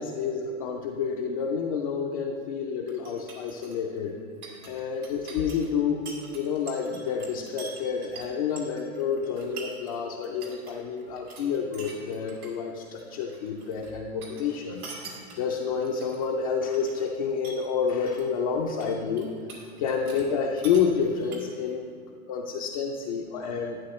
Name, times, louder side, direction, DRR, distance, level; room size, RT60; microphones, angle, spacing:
voice 1, 0.0-4.2 4.7-14.8 15.4-19.3 19.8-21.9 22.3-23.8, left 6 dB, 25° left, 0 dB, 0.3 m, -29 dB
sound 1, 2.9-10.0 10.2-10.7 11.0-12.5 12.8-13.9 14.2-16.3 16.7-17.1 17.4-18.3 18.6-20.3 20.5-21.7, right 4 dB, 85° right, 2.5 m, -45 dB
11.5 x 9.4 x 3.1 m, 2.1 s
hypercardioid pair, 140°, 42 cm